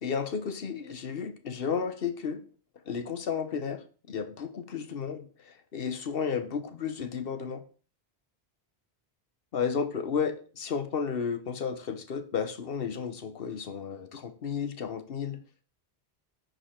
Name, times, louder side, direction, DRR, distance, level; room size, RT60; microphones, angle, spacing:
voice 1, 0.0-2.4 2.9-7.6 9.5-15.4, left 6 dB, 65° left, 9 dB, 1.1 m, -33 dB
10.0 x 5.3 x 4.4 m, 0.40 s
omnidirectional pair, 1.1 m